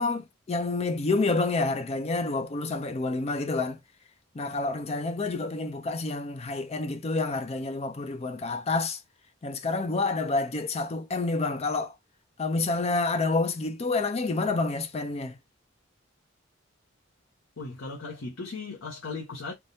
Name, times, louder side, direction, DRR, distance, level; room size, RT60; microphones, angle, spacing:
voice 1, 0.0-3.8 4.3-9.0 9.4-12.0 12.4-15.4, left 3 dB, 30° left, 0.4 m, -28 dB
voice 2, 17.6-19.5, left 3 dB, 85° left, 0.8 m, -37 dB
3.3 x 2.3 x 2.7 m
head